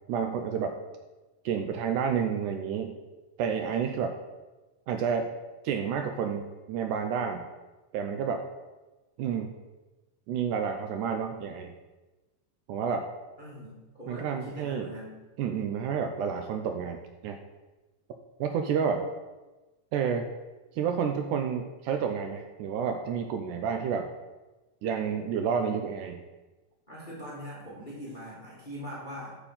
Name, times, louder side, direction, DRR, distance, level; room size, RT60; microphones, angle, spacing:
voice 1, 0.1-0.8 1.5-2.9 3.4-4.2 4.9-5.3 5.6-7.4 7.9-8.4 9.2-9.5 10.3-11.7 12.7-13.0 14.1-14.9 15.4-17.4 18.4-19.1 19.9-20.3 20.8-24.1 24.8-26.2, right 7 dB, 80° right, 5 dB, 1.9 m, -30 dB
voice 2, 13.4-15.2 26.9-29.4, equal, 25° left, -6 dB, 1.2 m, -42 dB
7.0 x 7.0 x 5.6 m, 1.1 s
omnidirectional pair, 4.0 m